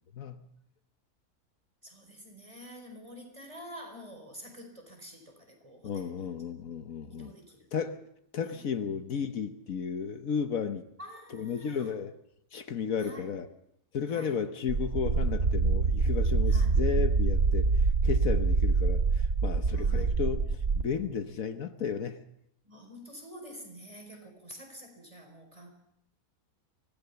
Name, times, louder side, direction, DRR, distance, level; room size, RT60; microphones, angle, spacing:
voice 1, 0.1-0.5 5.8-7.3 7.7-8.0 8.3-10.9 11.3-12.1 12.5-13.5 13.9-17.7 18.0-22.2, left 7 dB, 70° left, 1.4 m, -33 dB
voice 2, 1.8-6.3 7.1-7.7 8.5-9.0 11.0-11.9 13.0-13.3 14.1-14.4 16.5-16.8 19.7-20.2 22.6-25.7, equal, 20° right, 4.4 m, -48 dB
sound 1, 14.7-20.8, right 4 dB, 50° right, 1.5 m, -25 dB
24.5 x 18.0 x 6.9 m
omnidirectional pair, 1.5 m